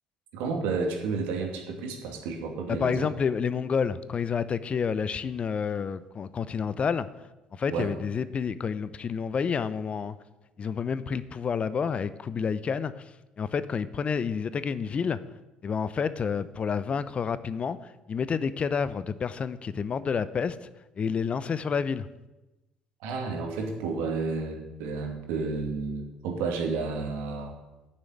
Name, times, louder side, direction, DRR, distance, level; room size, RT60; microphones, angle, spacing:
voice 1, 0.3-3.1 7.7-7.9 23.0-27.5, right 4 dB, 65° right, 1 dB, 2.5 m, -31 dB
voice 2, 2.7-7.1 7.5-10.2 10.6-15.2 15.6-20.6 21.0-22.1, left 6 dB, 35° left, 15 dB, 0.6 m, -29 dB
9.6 x 7.1 x 9.1 m, 1.0 s
figure-of-eight pair, 55°, 3 cm